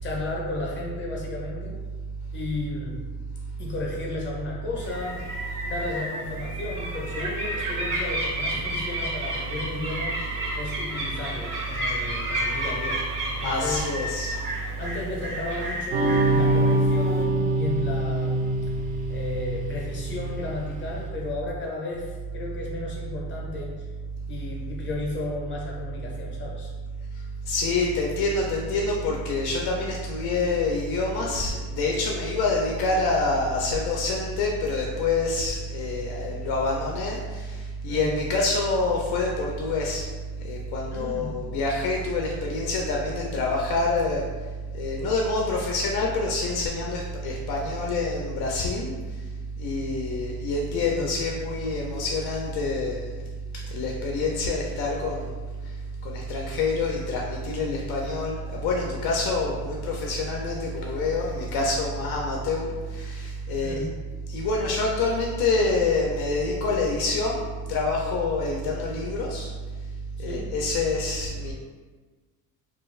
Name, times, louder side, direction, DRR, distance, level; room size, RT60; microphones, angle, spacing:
voice 1, 0.0-1.8 2.3-3.0 3.6-10.1 10.6-13.9 14.8-18.5 19.1-23.9 24.3-26.7 37.9-38.1 40.9-41.3 50.8-51.0 63.6-63.9 70.2-70.5, left 2 dB, 30° left, -2 dB, 0.7 m, -34 dB
sound 1, 4.8-17.2, right 1 dB, 60° right, 0.7 m, -32 dB
voice 2, 13.4-14.4 27.5-40.0 40.4-44.2 44.7-48.9 49.6-53.1 53.5-55.4 56.0-63.8 64.3-69.5 70.2-71.5, left 2 dB, 80° left, -1 dB, 0.5 m, -26 dB
sound 2, 15.9-20.7, right 2 dB, 25° right, 0.4 m, -24 dB
2.4 x 2.3 x 3.1 m, 1.3 s
cardioid pair, 140°, 37 cm